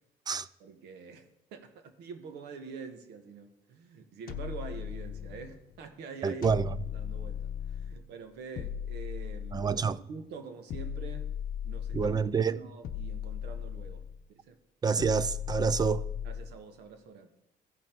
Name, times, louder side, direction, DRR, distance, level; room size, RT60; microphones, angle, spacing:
voice 1, 0.6-9.6 10.1-11.3 11.6-12.2 12.5-14.0 14.3-14.6 16.2-17.3, right 5 dB, 80° right, 1.3 m, -46 dB
sound 1, 4.3-5.6 6.4-8.1 8.6-10.0 10.7-12.3 12.8-14.2 15.0-16.6, left 9 dB, 55° left, 0.7 m, -37 dB
voice 2, 6.2-6.7 9.5-10.0 11.9-12.6 14.8-16.1, right 5 dB, 25° right, 0.4 m, -27 dB
15.5 x 5.6 x 3.5 m
cardioid pair, 110°, 17 cm